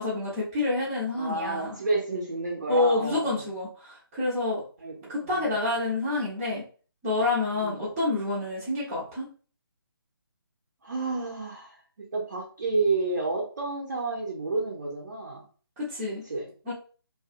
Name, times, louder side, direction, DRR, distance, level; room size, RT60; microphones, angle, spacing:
voice 1, 0.0-1.8 2.7-4.6 5.1-6.6 7.0-9.3 15.8-16.2 16.7-16.8, left 2 dB, 15° right, -11 dB, 0.8 m, -28 dB
voice 2, 1.2-3.4 4.8-5.6 7.6-7.9 10.8-15.4 16.1-16.5, right 3 dB, 45° right, -2 dB, 0.7 m, -30 dB
2.6 x 2.4 x 2.4 m, 0.39 s
figure-of-eight pair, 145°, 13 cm